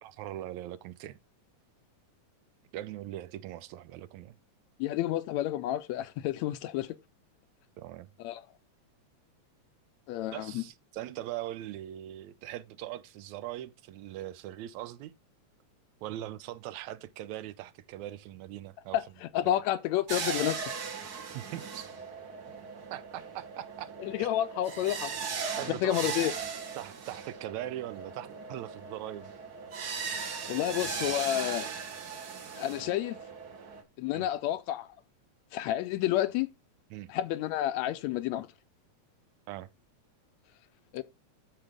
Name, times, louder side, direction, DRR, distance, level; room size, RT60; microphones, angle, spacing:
voice 1, 0.0-1.2 2.7-4.4 7.8-8.1 10.3-15.1 16.0-19.0 21.3-21.9 22.9-23.9 24.2-24.3 25.6-26.2 26.8-29.3 34.1-34.3 36.9-37.1 39.5-39.7, right 13 dB, 80° right, 1.9 m, -41 dB
voice 2, 4.8-7.0 8.2-8.4 10.1-10.6 18.9-20.6 24.0-25.1 25.7-26.3 30.5-31.7 32.6-33.2 34.0-34.9 35.5-36.5 37.1-38.5 40.9-41.0, left 13 dB, 75° left, 1.8 m, -30 dB
sound 1, 20.1-33.8, right 5 dB, 45° right, 1.3 m, -38 dB
13.5 x 4.8 x 3.5 m
omnidirectional pair, 3.4 m